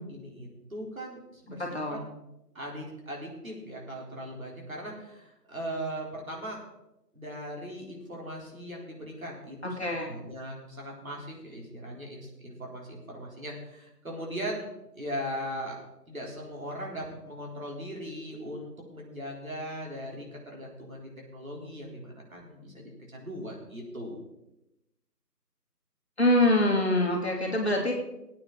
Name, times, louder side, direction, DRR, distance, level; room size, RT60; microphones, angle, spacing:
voice 1, 0.1-2.0 2.5-6.6 7.1-14.7 14.9-15.8 16.1-24.2, equal, 55° right, -2 dB, 4.1 m, -39 dB
voice 2, 9.8-10.2 26.2-27.9, left 1 dB, 40° left, 0 dB, 2.6 m, -24 dB
18.5 x 9.0 x 4.1 m, 0.91 s
figure-of-eight pair, 170°, 49 cm